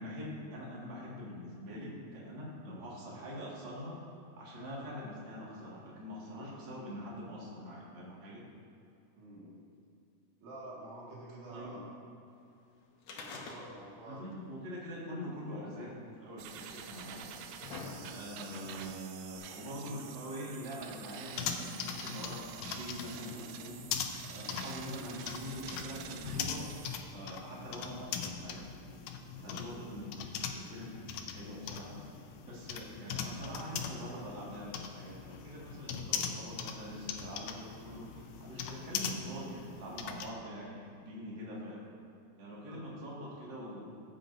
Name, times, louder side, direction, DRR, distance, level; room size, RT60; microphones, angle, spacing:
voice 1, 0.0-4.0 4.4-8.4 11.5-11.8 14.1-17.2 18.0-23.8 24.3-26.7 27.1-28.7 29.4-41.9 42.4-44.0, equal, 40° right, -5 dB, 2.3 m, -44 dB
voice 2, 9.2-9.6 10.4-11.9 13.1-14.5 29.3-29.6 42.7-42.8, right 1 dB, 65° right, -5 dB, 3.1 m, -49 dB
sound 1, 13.0-14.1 14.3-14.4 15.4-15.5 16.4-16.5 17.2-18.5 19.4-19.5, left 4 dB, 70° left, 2.0 m, -45 dB
sound 2, 16.4-27.0, right 8 dB, 80° right, 1.4 m, -48 dB
sound 3, 21.4-40.3, left 7 dB, 85° left, 2.1 m, -41 dB
14.5 x 8.7 x 2.6 m, 2.6 s
omnidirectional pair, 3.4 m